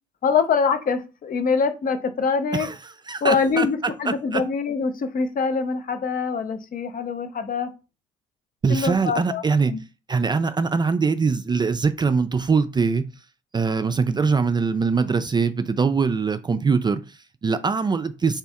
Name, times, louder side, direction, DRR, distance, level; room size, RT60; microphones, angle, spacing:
voice 1, 0.2-2.7 3.2-7.7 8.7-9.8, left 5 dB, 45° left, 0.7 m, -24 dB
voice 2, 3.1-3.7 4.1-4.4 8.6-9.7 10.1-13.0 13.5-18.4, right 5 dB, 25° right, 0.3 m, -22 dB
3.4 x 2.9 x 3.4 m
hypercardioid pair, 50°, 20 cm